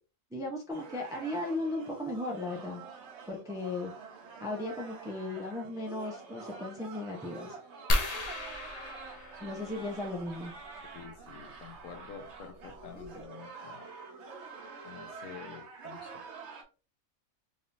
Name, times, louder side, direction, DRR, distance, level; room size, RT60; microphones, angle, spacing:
voice 1, 0.3-2.8 3.3-3.9 4.4-7.6 9.4-10.5, left 2 dB, 5° right, 0 dB, 0.4 m, -36 dB
sound 1, 0.7-16.6, right 5 dB, 55° right, 1.2 m, -47 dB
sound 2, 7.9-10.3 11.9-12.0 12.6-12.7 13.0-13.2, left 1 dB, 45° left, 0.5 m, -33 dB
voice 2, 10.8-13.9 14.8-16.2, left 7 dB, 70° left, 6 dB, 1.1 m, -48 dB
3.6 x 3.4 x 2.6 m, 0.33 s
omnidirectional pair, 1.5 m